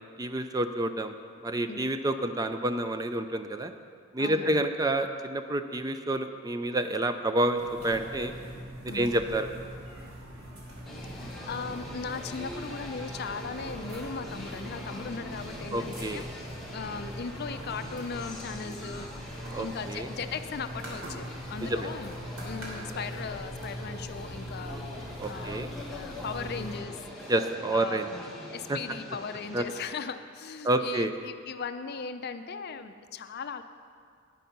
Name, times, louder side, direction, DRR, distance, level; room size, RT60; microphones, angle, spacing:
voice 1, 0.2-1.2 1.4-3.7 4.1-8.3 8.9-9.5 15.7-16.2 19.5-20.1 21.6-21.9 25.2-25.7 27.3-28.1 28.7-28.8 29.5-29.6 30.6-31.1, right 1 dB, 20° right, 9 dB, 0.4 m, -29 dB
voice 2, 4.2-4.6 8.9-9.1 11.1-22.1 22.4-27.3 27.7-33.6, left 5 dB, 50° left, 10 dB, 0.5 m, -38 dB
sound 1, 7.5-26.8, equal, 85° right, 3.1 m, -42 dB
sound 2, 10.8-29.8, equal, ahead, 1.5 m, -43 dB
10.0 x 9.2 x 5.4 m, 2.2 s
head